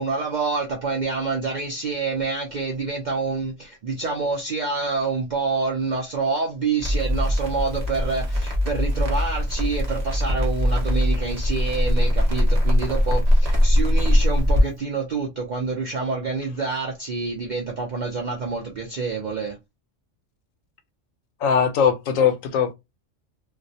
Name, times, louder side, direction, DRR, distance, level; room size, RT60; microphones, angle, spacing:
voice 1, 0.0-19.6, right 4 dB, 70° right, 0.4 m, -27 dB
Crackle, 6.8-14.6, equal, 35° right, 0.7 m, -21 dB
voice 2, 21.4-22.7, left 7 dB, 85° left, 1.0 m, -20 dB
2.4 x 2.1 x 2.6 m
omnidirectional pair, 1.3 m